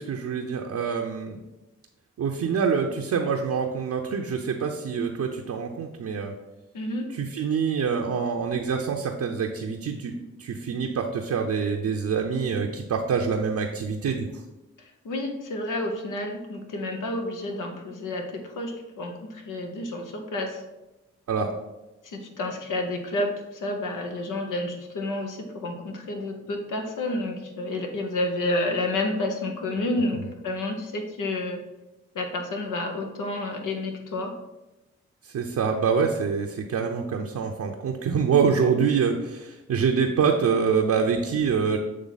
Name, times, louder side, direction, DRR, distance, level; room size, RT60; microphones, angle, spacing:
voice 1, 0.0-1.4 2.2-6.3 7.1-10.1 10.4-14.3 21.3-21.5 30.1-30.3 35.2-41.8, right 6 dB, 65° right, 2 dB, 0.7 m, -25 dB
voice 2, 6.7-7.1 15.0-20.6 22.0-31.6 32.1-34.3, left 2 dB, 80° left, 3 dB, 0.9 m, -30 dB
7.4 x 3.2 x 4.0 m, 1.0 s
supercardioid pair, 40°, 31 cm